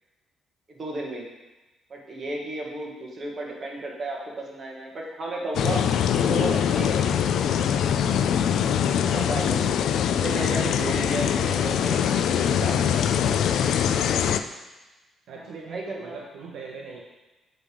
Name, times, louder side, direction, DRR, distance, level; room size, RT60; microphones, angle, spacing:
voice 1, 0.7-1.3 1.9-4.2 4.5-5.9 6.1-7.0 9.0-12.0 12.4-12.8 13.2-13.4 15.7-16.2, right 2 dB, 40° right, -1 dB, 1.5 m, -33 dB
sound 1, 5.5-14.4, left 8 dB, 75° left, 0.3 m, -23 dB
voice 2, 13.8-14.3 15.3-17.0, right 5 dB, 80° right, -1 dB, 0.8 m, -41 dB
7.6 x 3.4 x 4.9 m, 1.1 s
cardioid pair, 90°, 0 cm